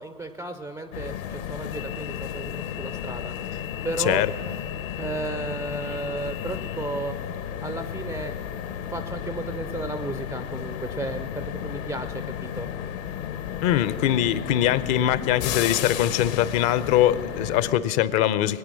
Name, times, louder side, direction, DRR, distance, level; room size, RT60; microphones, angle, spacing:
voice 1, 0.0-3.3 3.8-4.3 5.0-7.2 7.6-8.4 8.9-12.7, right 2 dB, 5° right, 9 dB, 0.3 m, -33 dB
sound 1, 0.9-17.7, left 9 dB, 70° left, 1.2 m, -33 dB
voice 2, 13.6-18.6, left 12 dB, 50° left, 16 dB, 0.7 m, -22 dB
22.0 x 8.9 x 6.2 m, 2.5 s
hypercardioid pair, 95°, 42 cm